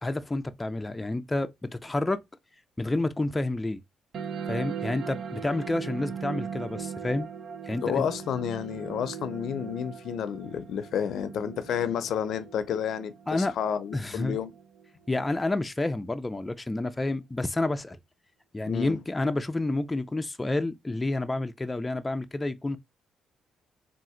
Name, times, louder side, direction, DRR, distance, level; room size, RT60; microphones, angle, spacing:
voice 1, 0.0-2.2 2.8-3.8 4.5-7.3 7.6-8.1 13.3-13.5 13.9-14.4 15.1-18.0 18.5-22.8, left 2 dB, 15° left, 0.4 m, -29 dB
sound 1, 4.1-15.1, right 7 dB, 65° right, 0.8 m, -39 dB
voice 2, 7.8-14.5 18.7-19.0, left 8 dB, 70° left, 0.5 m, -30 dB
3.6 x 2.5 x 4.3 m
cardioid pair, 90°, 0 cm